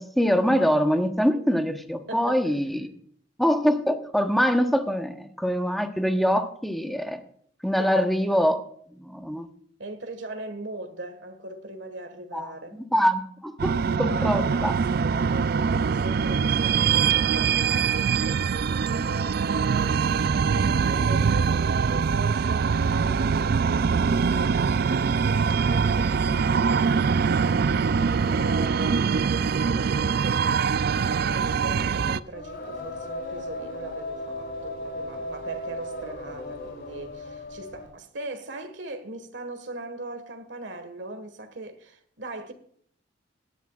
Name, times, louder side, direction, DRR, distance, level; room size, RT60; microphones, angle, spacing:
voice 1, 0.0-2.9 3.4-7.2 7.6-8.6 8.9-9.5 12.3-14.7, equal, ahead, 1.0 m, -24 dB
voice 2, 2.1-2.5 7.8-8.1 9.8-12.8 14.0-20.0 20.6-30.5 31.1-42.5, right 2 dB, 75° right, 1.6 m, -39 dB
sound 1, 13.6-32.2, right 6 dB, 55° right, 0.4 m, -23 dB
Singing, 24.8-38.0, left 1 dB, 60° left, 4.4 m, -39 dB
17.5 x 11.0 x 2.4 m
head